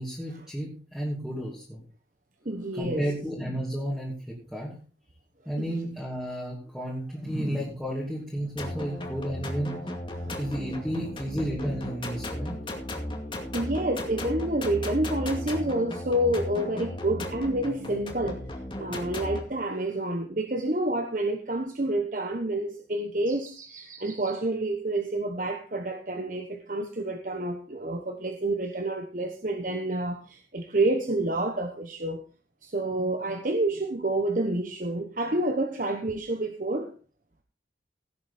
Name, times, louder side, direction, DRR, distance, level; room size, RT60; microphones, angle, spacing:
voice 1, 0.0-1.8 2.8-4.7 5.5-9.7 10.3-12.6, equal, 5° right, 2.8 m, -32 dB
voice 2, 2.4-3.1 5.6-5.7 8.6-8.7 10.1-10.5 13.5-18.4 18.8-32.2 32.6-36.9, right 1 dB, 45° right, 1.2 m, -29 dB
sound 1, 8.6-19.4, left 1 dB, 30° left, 2.3 m, -35 dB
16.5 x 8.5 x 4.3 m
head